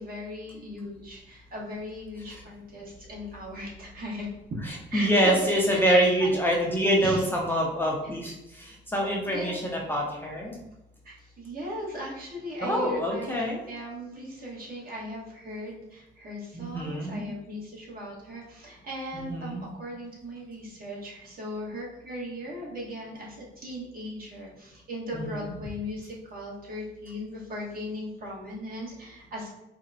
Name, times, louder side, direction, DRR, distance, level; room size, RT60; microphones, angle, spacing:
voice 1, 0.0-4.3 4.9-5.4 5.7-6.4 7.0-7.3 9.3-9.6 11.0-29.5, equal, 45° right, -4 dB, 1.3 m, -38 dB
voice 2, 4.7-10.6 12.6-13.6 16.5-17.3 19.1-19.6 25.1-25.4, equal, 10° left, -3 dB, 0.6 m, -26 dB
4.1 x 2.1 x 2.6 m, 0.90 s
cardioid pair, 90°, 20 cm